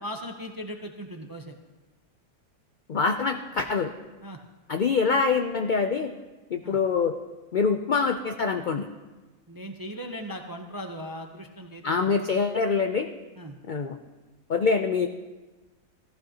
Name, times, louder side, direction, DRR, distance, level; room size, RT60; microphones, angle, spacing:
voice 1, 0.0-1.6 4.2-4.4 6.6-6.8 9.5-12.2 13.4-13.6, equal, 30° right, 3 dB, 0.3 m, -38 dB
voice 2, 2.9-3.9 4.7-6.1 6.5-7.2 7.5-8.9 11.8-13.1 13.7-14.0 14.5-15.1, left 5 dB, 85° left, 6 dB, 0.4 m, -25 dB
15.0 x 14.0 x 2.8 m, 1.2 s
omnidirectional pair, 1.5 m